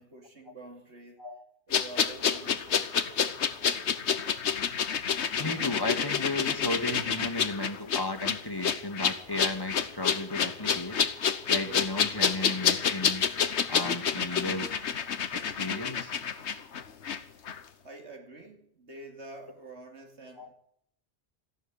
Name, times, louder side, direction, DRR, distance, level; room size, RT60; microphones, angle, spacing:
voice 1, 0.0-1.3 1.7-3.3 17.8-20.5, right 2 dB, 90° right, 3.1 m, -47 dB
sound 1, 1.7-17.2 17.5-17.6, left 7 dB, 80° left, 1.3 m, -28 dB
voice 2, 5.4-11.0 11.5-13.3 13.7-15.0 15.3-16.1 20.4-20.5, left 2 dB, 20° left, 2.1 m, -34 dB
14.5 x 11.5 x 8.7 m
omnidirectional pair, 1.1 m